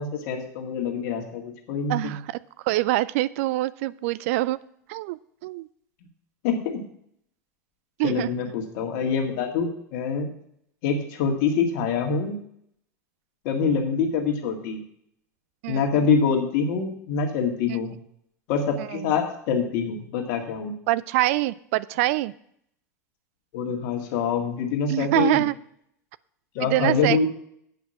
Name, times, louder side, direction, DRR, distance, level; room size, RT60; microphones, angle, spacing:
voice 1, 0.0-2.2 6.4-6.8 8.0-10.3 10.8-12.4 13.4-14.8 15.7-17.9 18.5-20.7 23.5-25.4 26.5-27.3, left 5 dB, 50° left, 2 dB, 1.9 m, -25 dB
voice 2, 1.9-2.2 2.6-4.6 4.9-5.7 8.0-8.3 15.6-15.8 18.9-19.0 20.9-22.3 24.9-25.5 26.6-27.3, right 17 dB, 50° right, 18 dB, 0.3 m, -24 dB
8.2 x 5.6 x 7.3 m, 0.71 s
figure-of-eight pair, 80°, 9 cm